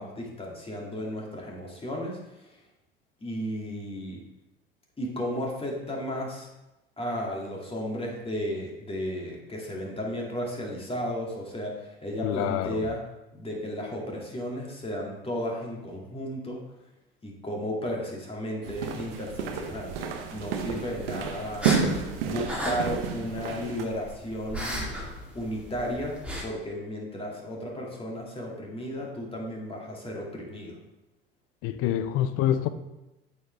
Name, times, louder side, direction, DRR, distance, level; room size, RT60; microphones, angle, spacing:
voice 1, 0.0-2.2 3.2-4.2 5.0-6.5 7.0-13.0 13.3-16.6 17.2-21.7 22.2-24.9 25.3-26.2 26.4-30.8, equal, 20° left, 2.4 m, -34 dB
voice 2, 12.2-12.9 31.6-32.7, left 11 dB, 50° left, 0.6 m, -26 dB
sound 1, 18.6-23.8, right 6 dB, 70° right, 1.0 m, -31 dB
sound 2, 20.7-26.4, equal, 5° right, 2.2 m, -36 dB
8.5 x 7.1 x 3.4 m
hypercardioid pair, 70°, 30 cm